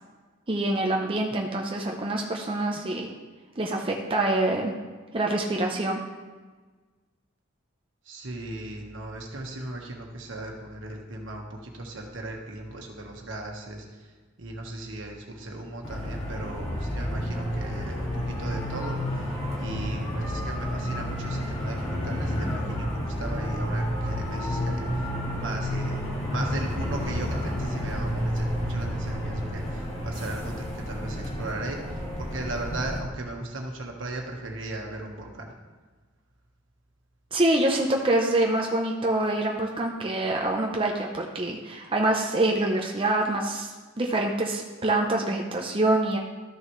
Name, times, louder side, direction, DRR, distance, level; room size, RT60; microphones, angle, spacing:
voice 1, 0.5-3.1 3.6-4.7 5.1-6.0 37.3-46.2, right 2 dB, 25° right, 0 dB, 0.7 m, -25 dB
voice 2, 8.0-14.1 14.4-25.1 25.3-35.5, right 2 dB, 70° right, 1 dB, 1.4 m, -37 dB
sound 1, 15.8-33.0, equal, 30° left, 1.9 m, -30 dB
13.0 x 6.1 x 3.2 m, 1.4 s
head